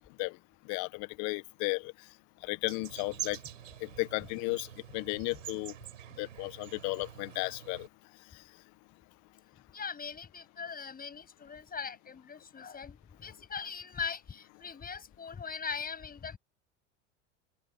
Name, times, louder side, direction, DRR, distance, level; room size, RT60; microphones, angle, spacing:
voice 1, 0.6-1.9 2.4-3.4 3.8-5.7 6.2-7.9, left 25 dB, 50° left, 1.6 m, -34 dB
sound 1, 2.6-7.9, right 12 dB, 80° right, 4.4 m, -45 dB
voice 2, 9.7-16.4, left 6 dB, 25° left, 7.9 m, -40 dB
open air
hypercardioid pair, 90°, 37 cm